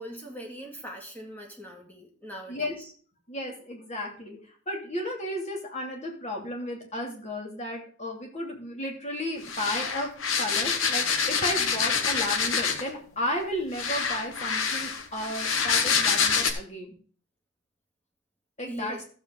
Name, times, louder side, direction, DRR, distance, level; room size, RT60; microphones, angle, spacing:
voice 1, 0.0-2.9 18.7-19.0, equal, 10° left, 0 dB, 2.1 m, -41 dB
voice 2, 3.3-4.4 4.7-10.1 10.4-16.9 18.6-19.0, left 1 dB, 30° left, 0 dB, 2.6 m, -33 dB
sound 1, 9.4-12.9 13.7-16.5, left 6 dB, 65° left, 1.2 m, -26 dB
13.5 x 7.5 x 3.8 m, 0.43 s
head